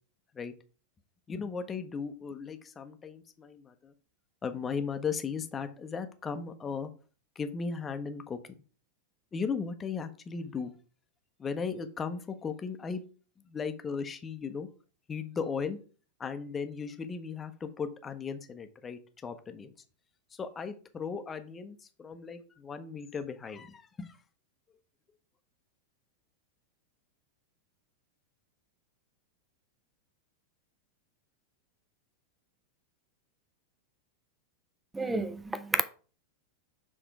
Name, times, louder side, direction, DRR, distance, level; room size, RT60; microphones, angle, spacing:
voice 1, 1.3-3.9 4.4-6.9 7.4-8.4 9.3-10.7 11.4-13.0 13.5-14.7 15.1-15.8 16.2-19.7 20.3-24.2, left 5 dB, 20° left, 0.8 m, -36 dB
voice 2, 34.9-35.8, right 3 dB, 10° right, 0.5 m, -30 dB
6.8 x 3.6 x 4.5 m
figure-of-eight pair, 90°, 0 cm